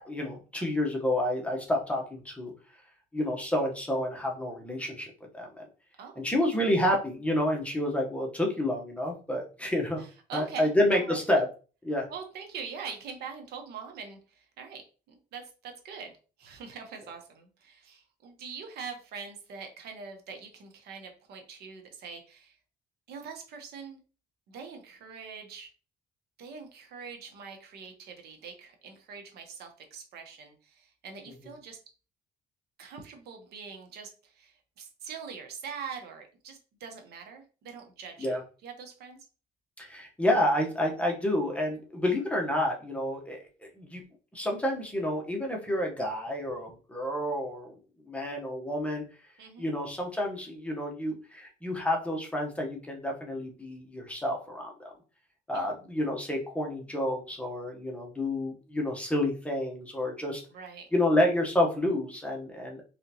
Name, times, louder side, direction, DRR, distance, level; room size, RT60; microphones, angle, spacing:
voice 1, 0.0-2.5 3.1-5.7 6.2-10.0 10.3-11.4 11.8-12.1 38.2-38.4 39.8-43.4 43.8-44.0 44.3-47.7 48.1-49.0 49.6-54.9 55.5-60.4 60.9-62.8, left 1 dB, 5° left, 0 dB, 1.1 m, -29 dB
voice 2, 10.0-11.2 12.1-14.8 15.1-16.1 16.4-22.6 23.1-24.0 24.5-25.7 26.4-31.8 32.8-39.2 49.4-49.7 55.5-55.7 60.5-60.9, right 6 dB, 70° right, 4 dB, 1.1 m, -43 dB
3.8 x 3.4 x 2.9 m, 0.36 s
cardioid pair, 110°, 17 cm